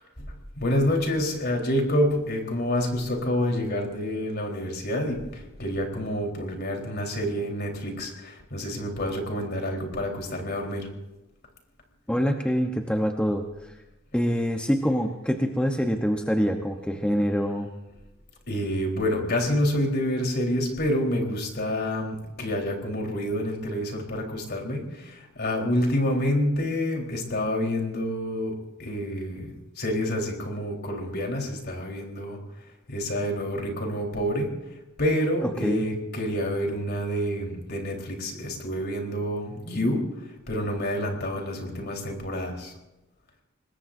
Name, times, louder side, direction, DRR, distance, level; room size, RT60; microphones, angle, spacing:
voice 1, 0.0-10.9 18.5-32.4 32.9-42.7, left 1 dB, 50° left, 1 dB, 4.0 m, -28 dB
voice 2, 12.1-13.4 14.1-17.7 35.4-35.8, equal, 5° left, 3 dB, 0.9 m, -25 dB
26.0 x 20.5 x 2.7 m, 0.99 s
head